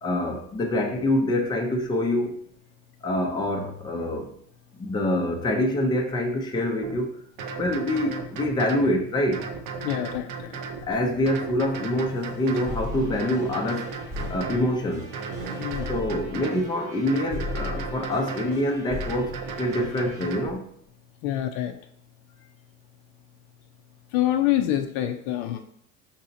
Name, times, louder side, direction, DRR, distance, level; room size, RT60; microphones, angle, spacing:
voice 1, 0.0-2.4 3.0-4.3 4.8-7.2 7.6-9.5 10.8-13.9 14.3-15.1 15.9-20.6, left 1 dB, 10° left, 0.5 m, -26 dB
sound 1, 6.8-7.0 7.4-8.9 9.3-10.8 11.3-12.8 13.2-14.7 15.1-16.6 17.1-18.6 19.0-20.5, right 4 dB, 45° right, 0.7 m, -35 dB
voice 2, 9.8-10.6 15.6-15.9 21.2-21.8 24.1-25.6, left 12 dB, 60° left, 0.5 m, -26 dB
sound 2, 10.8-11.3 11.9-13.5 14.1-15.8, right 4 dB, 75° right, 1.2 m, -43 dB
sound 3, 12.7-20.3, left 2 dB, 5° right, 0.9 m, -38 dB
5.3 x 2.8 x 2.6 m
hypercardioid pair, 90°, 44 cm